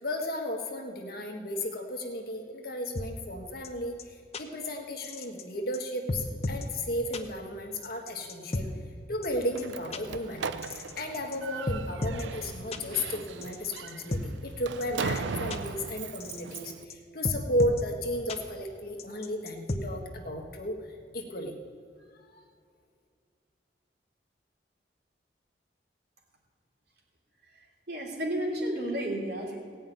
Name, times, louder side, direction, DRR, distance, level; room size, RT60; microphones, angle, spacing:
voice 1, 0.0-8.7 9.1-10.5 11.0-20.8 21.1-21.5 22.3-22.4, left 1 dB, 55° left, 2 dB, 1.5 m, -34 dB
sound 1, 2.9-3.1 3.6-3.7 4.0-4.1 4.3-4.4 5.0-5.4 5.7-5.8 6.1-6.7 7.1-7.2 7.8-8.6 9.2-9.3 9.6-9.7 9.9-10.0 10.6-11.4 11.7-12.2 12.7-12.8 13.4-14.2 14.8-14.9 15.2-15.3 15.5-15.6 16.2-16.6 16.9-17.0 17.2-17.8 18.3-18.4 19.0-19.8, left 2 dB, 35° left, 0.8 m, -33 dB
Slam, 9.4-16.8, right 5 dB, 90° right, 0.5 m, -38 dB
voice 2, 27.9-29.6, right 1 dB, 60° right, -2 dB, 3.1 m, -32 dB
17.0 x 5.7 x 9.2 m, 2.2 s
head